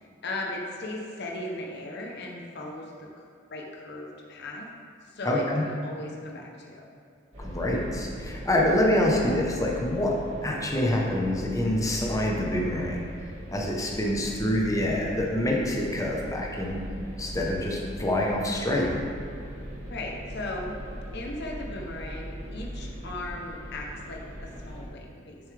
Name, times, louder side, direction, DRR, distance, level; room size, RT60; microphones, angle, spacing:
voice 1, 0.2-3.2 3.5-4.7 5.1-6.9 19.9-20.8 21.1-25.4, left 2 dB, 60° left, 0 dB, 0.9 m, -37 dB
voice 2, 5.2-5.6 7.4-13.0 13.5-16.8 17.2-19.0, left 1 dB, 15° left, -2 dB, 0.9 m, -26 dB
sound 1, 7.3-24.9, equal, 35° right, 1.8 m, -39 dB
7.1 x 6.8 x 3.4 m, 2.3 s
head